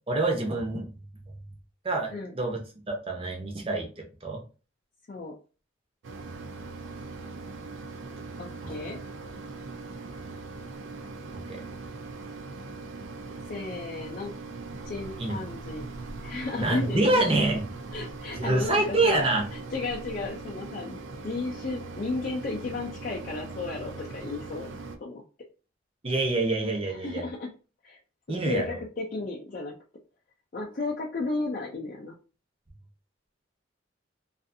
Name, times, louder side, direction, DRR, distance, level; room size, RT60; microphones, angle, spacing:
voice 1, 0.1-0.9 1.8-2.6 2.9-4.4 8.6-8.7 11.5-11.6 15.2-15.4 16.6-17.7 18.3-19.4 26.0-27.2 28.3-28.8, right 2 dB, 30° right, 1 dB, 0.6 m, -26 dB
Mechanisms, 6.0-25.0, right 3 dB, 85° right, 0.4 m, -40 dB
voice 2, 8.4-9.0 13.5-14.3 14.8-15.9 16.2-17.2 17.9-19.3 19.7-21.0 21.2-24.7 25.0-25.2 26.9-27.5 27.8-28.0 28.3-29.7 30.5-32.2, left 3 dB, 45° left, -2 dB, 0.4 m, -34 dB
2.5 x 2.4 x 2.6 m, 0.35 s
head